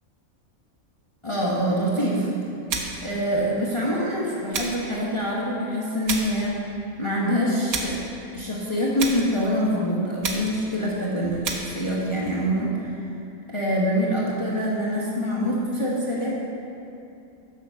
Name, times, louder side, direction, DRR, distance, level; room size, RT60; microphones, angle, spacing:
voice 1, 1.2-2.3 3.0-8.0 8.3-13.0 13.5-16.3, equal, 25° left, -6 dB, 1.1 m, -25 dB
sound 1, 2.7-3.1 4.5-4.9 6.1-6.4 7.7-8.1 9.0-9.4 10.2-10.7 11.4-11.8, right 4 dB, 90° right, 1.4 m, -30 dB
7.5 x 6.0 x 6.8 m, 2.7 s
omnidirectional pair, 1.5 m